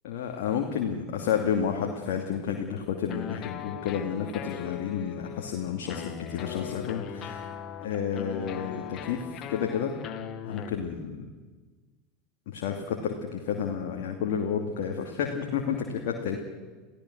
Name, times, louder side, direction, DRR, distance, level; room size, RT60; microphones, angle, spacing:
voice 1, 0.0-7.4 7.8-10.0 10.4-11.2 12.5-16.4, left 7 dB, 60° left, 2 dB, 2.7 m, -31 dB
sound 1, 3.1-11.0, left 9 dB, 40° left, 2.1 m, -39 dB
29.5 x 17.0 x 6.4 m, 1.3 s
figure-of-eight pair, 80°, 0 cm